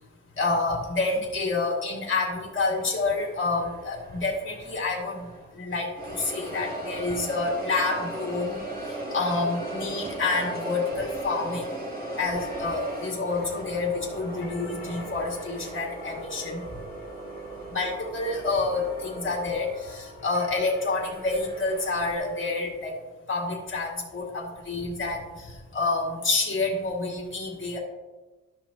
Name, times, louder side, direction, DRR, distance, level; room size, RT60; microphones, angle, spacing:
voice 1, 0.4-5.3 5.6-8.6 9.1-11.7 12.2-16.6 17.7-22.9 23.3-25.2 25.7-27.8, left 3 dB, 35° left, -3 dB, 2.1 m, -28 dB
sound 1, 2.8-5.6 6.0-22.2, right 2 dB, 25° right, 3.0 m, -38 dB
sound 2, 12.1-22.6, left 2 dB, 90° left, 2.0 m, -47 dB
12.0 x 6.2 x 2.8 m, 1.2 s
wide cardioid pair, 100°, 36 cm